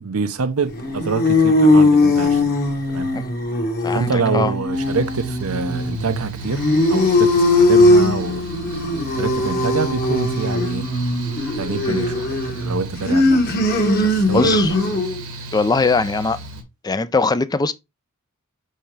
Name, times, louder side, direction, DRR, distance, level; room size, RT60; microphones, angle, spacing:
voice 1, 0.0-2.6 2.9-3.1 3.9-8.5 9.1-10.9 11.6-13.7 14.0-14.6, right 4 dB, 70° right, 0.7 m, -26 dB
sound 1, 0.7-15.2, left 2 dB, 45° left, 1.5 m, -19 dB
voice 2, 3.8-4.5 11.9-12.0 13.9-14.7 15.5-16.4 16.8-17.7, left 3 dB, 20° left, 0.4 m, -21 dB
Mechanical fan, 4.7-16.6, right 1 dB, 90° right, 1.9 m, -35 dB
5.8 x 5.5 x 3.2 m
head